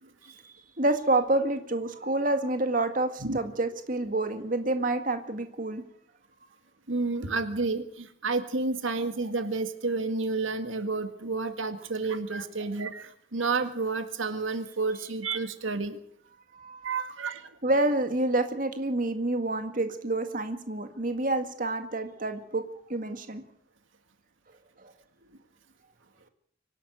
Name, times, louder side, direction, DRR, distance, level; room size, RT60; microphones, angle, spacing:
voice 1, 0.3-5.8 16.5-16.9 17.6-22.6 22.9-23.4 24.8-24.9, right 2 dB, 45° right, 7 dB, 1.9 m, -28 dB
voice 2, 6.9-16.0 16.8-17.5, right 3 dB, 80° right, 9 dB, 1.9 m, -30 dB
24.5 x 12.0 x 9.3 m, 0.64 s
head